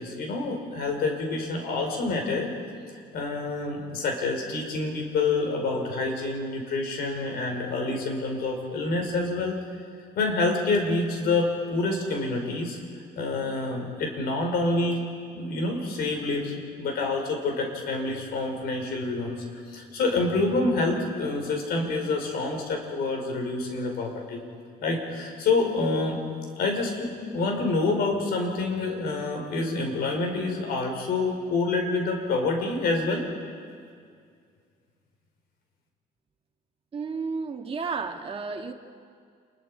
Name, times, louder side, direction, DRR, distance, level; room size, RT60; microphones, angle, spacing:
voice 1, 0.0-2.5 3.1-9.6 10.2-12.8 13.2-15.0 15.3-24.4 24.8-26.2 26.6-33.3, left 3 dB, 65° left, 2 dB, 5.0 m, -27 dB
voice 2, 36.9-38.7, right 4 dB, 35° right, 4 dB, 1.8 m, -32 dB
28.5 x 22.0 x 5.0 m, 2.2 s
cardioid pair, 110°, 17 cm